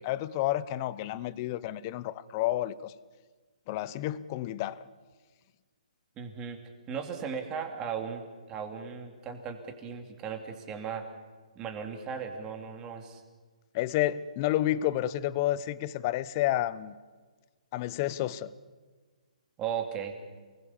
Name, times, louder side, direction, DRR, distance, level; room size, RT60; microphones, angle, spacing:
voice 1, 0.0-2.9 3.7-4.8 13.7-16.9 17.7-18.5, left 14 dB, 25° left, 0.8 m, -30 dB
voice 2, 6.2-6.6 6.9-11.1 11.5-13.2 19.6-20.1, right 7 dB, 15° right, 2.6 m, -37 dB
28.5 x 21.0 x 7.3 m
hypercardioid pair, 165°, 4 cm